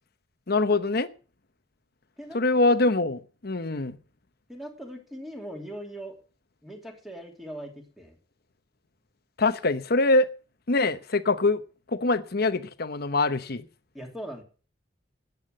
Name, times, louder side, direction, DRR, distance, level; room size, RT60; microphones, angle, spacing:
voice 1, 0.5-1.1 2.3-4.0 9.4-10.3 10.7-11.6 11.9-13.6, left 2 dB, 55° left, 0.9 m, -24 dB
voice 2, 4.5-6.2 6.6-8.2 13.9-14.4, right 1 dB, ahead, 2.7 m, -40 dB
14.0 x 9.6 x 5.3 m
head